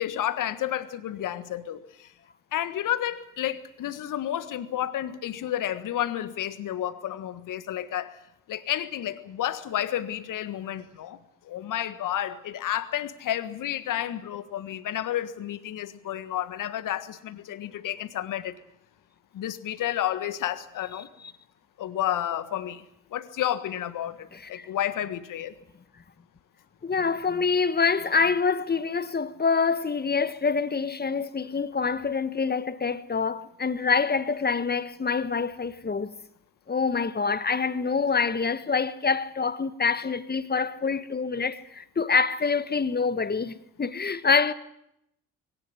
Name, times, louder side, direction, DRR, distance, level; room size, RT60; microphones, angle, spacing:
voice 1, 0.0-2.1 2.5-8.2 8.5-11.2 11.4-18.6 19.3-21.1 21.8-22.8 23.1-25.6, left 11 dB, 55° left, 1.6 m, -31 dB
voice 2, 24.3-24.7 26.8-36.2 36.7-44.5, left 5 dB, 25° left, 1.5 m, -26 dB
21.5 x 18.0 x 9.5 m
hypercardioid pair, 50°, 38 cm